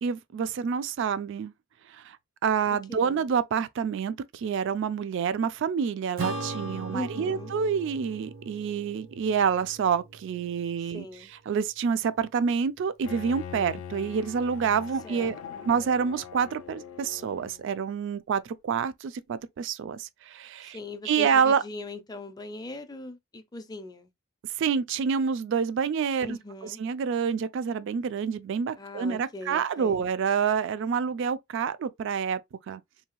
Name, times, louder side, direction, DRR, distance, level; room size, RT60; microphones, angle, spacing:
voice 1, 0.0-1.5 1.9-2.2 2.4-11.1 11.5-15.4 15.6-20.8 21.1-21.6 24.6-26.4 26.6-32.4 32.7-32.8, right 6 dB, 60° right, 0.3 m, -27 dB
voice 2, 2.9-3.3 6.9-7.5 10.9-11.3 15.0-15.7 20.6-24.1 26.2-26.8 28.8-30.0, left 2 dB, 20° left, 0.4 m, -40 dB
Acoustic guitar / Strum, 6.2-10.9, right 2 dB, 85° right, 0.8 m, -39 dB
Bowed string instrument, 13.0-17.8, left 8 dB, 85° left, 0.3 m, -42 dB
2.7 x 2.2 x 2.9 m
head